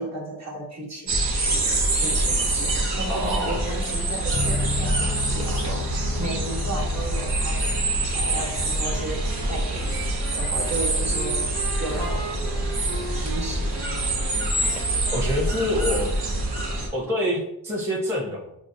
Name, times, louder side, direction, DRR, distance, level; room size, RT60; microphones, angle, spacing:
voice 1, 0.0-7.7 8.0-10.0 10.3-11.5 11.8-12.7 13.2-14.4 16.9-17.0, right 1 dB, 35° right, -2 dB, 1.1 m, -34 dB
sound 1, 1.1-16.9, right 2 dB, 60° right, 1.1 m, -25 dB
voice 2, 3.1-3.6 15.1-16.1 16.9-18.5, left 1 dB, 5° right, -4 dB, 0.8 m, -26 dB
Bass guitar, 4.3-14.1, left 3 dB, 30° left, 0.4 m, -35 dB
Wind instrument woodwind instrument, 8.9-16.8, right 3 dB, 90° right, 0.8 m, -39 dB
6.1 x 2.1 x 2.6 m, 0.81 s
wide cardioid pair, 90°, 45 cm